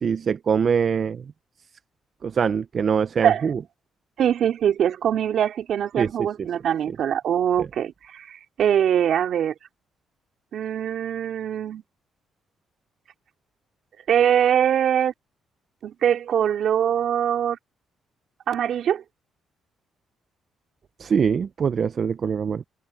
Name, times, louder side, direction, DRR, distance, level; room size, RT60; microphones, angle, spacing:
voice 1, 0.0-1.3 2.2-3.6 6.0-6.3 6.9-7.0 7.6-7.7 21.0-22.6, right 6 dB, 50° right, 0.5 m, -23 dB
voice 2, 4.2-9.5 10.5-11.8 14.1-15.1 15.8-17.6 18.5-19.0, right 9 dB, 65° right, 3.5 m, -22 dB
cardioid pair, 90°, 0 cm